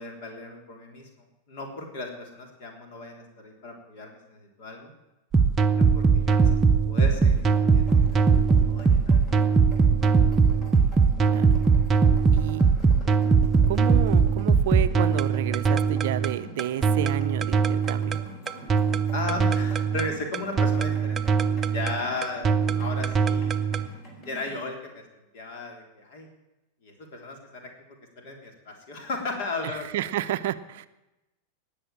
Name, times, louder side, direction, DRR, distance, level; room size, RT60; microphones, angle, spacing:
voice 1, 0.0-4.9 5.7-6.6 6.9-9.7 19.1-21.2 21.7-23.7 24.3-25.0 25.3-26.3 26.8-27.7 28.2-29.9, left 2 dB, 50° left, 3 dB, 3.6 m, -36 dB
sound 1, 5.3-23.9, right 5 dB, 20° right, 0.8 m, -21 dB
sound 2, 7.1-24.5, right 1 dB, 35° left, 3.8 m, -45 dB
voice 2, 12.3-12.6 13.7-18.2 22.7-22.9 29.9-30.9, right 12 dB, 55° right, 13 dB, 0.6 m, -31 dB
19.0 x 7.0 x 8.9 m, 0.99 s
figure-of-eight pair, 90°, 0 cm